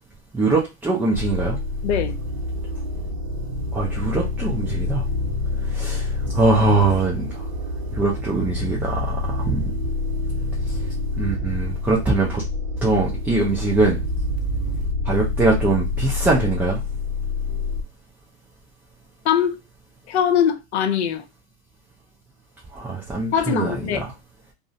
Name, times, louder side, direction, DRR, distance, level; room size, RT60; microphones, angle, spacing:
voice 1, 0.3-1.6 3.7-5.0 5.7-7.4 7.9-9.6 11.2-12.4 12.8-14.0 15.1-16.8 22.7-24.1, right 3 dB, 5° right, 0.3 m, -22 dB
sound 1, 1.1-17.8, left 2 dB, 60° right, 0.6 m, -27 dB
voice 2, 1.8-2.2 19.2-19.6 20.1-21.2 23.3-24.0, left 9 dB, 90° left, 0.5 m, -21 dB
2.4 x 2.1 x 2.5 m
hypercardioid pair, 115°, 33 cm